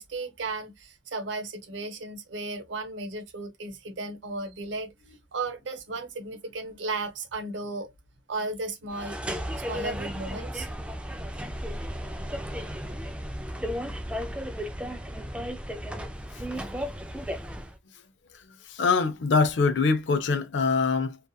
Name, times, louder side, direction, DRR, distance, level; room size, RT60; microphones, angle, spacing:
voice 1, 0.0-7.9 8.3-9.2 9.7-10.7, right 3 dB, 90° right, 0.7 m, -35 dB
sound 1, 8.9-17.8, equal, 5° right, 0.4 m, -34 dB
voice 2, 18.7-21.2, left 4 dB, 75° left, 0.5 m, -24 dB
2.7 x 2.4 x 2.2 m
head